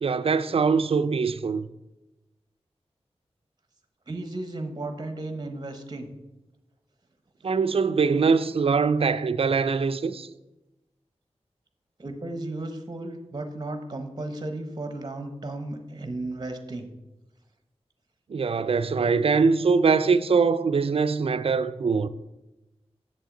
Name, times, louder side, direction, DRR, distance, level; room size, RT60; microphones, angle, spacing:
voice 1, 0.0-1.7 7.4-10.3 18.3-22.1, right 5 dB, 55° right, 0.4 m, -23 dB
voice 2, 4.1-6.1 12.0-16.9, right 2 dB, 40° right, 0.9 m, -34 dB
7.8 x 7.1 x 3.8 m
wide cardioid pair, 85°, 11 cm